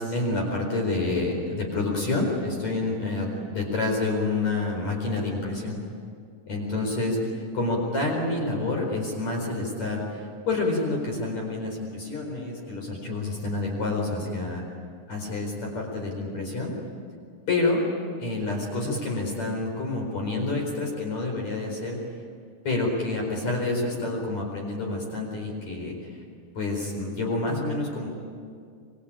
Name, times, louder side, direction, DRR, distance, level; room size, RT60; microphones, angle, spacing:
voice 1, 0.0-5.8 6.5-7.2 7.5-14.6 15.1-16.7 17.5-17.8 18.2-22.0 22.6-26.0 26.6-28.1, left 2 dB, 50° left, 0 dB, 5.6 m, -28 dB
25.5 x 25.0 x 8.8 m, 2.2 s
omnidirectional pair, 4.0 m